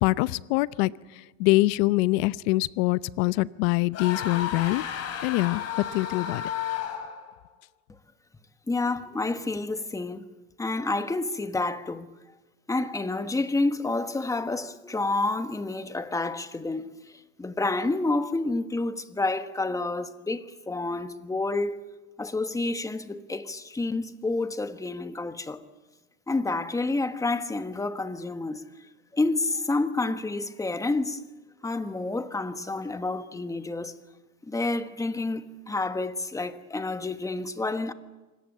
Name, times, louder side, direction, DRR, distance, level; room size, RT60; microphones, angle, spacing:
voice 1, 0.0-4.8 5.2-6.5, left 20 dB, 55° left, 0.8 m, -24 dB
sound 1, 3.9-7.3, left 9 dB, 40° left, 4.0 m, -33 dB
voice 2, 8.7-10.3 10.6-12.1 12.7-16.9 17.4-21.8 22.2-25.6 26.3-28.6 29.1-31.2 31.6-33.9 34.4-37.9, left 2 dB, 10° left, 1.2 m, -29 dB
25.5 x 18.0 x 9.0 m
supercardioid pair, 120°, 38 cm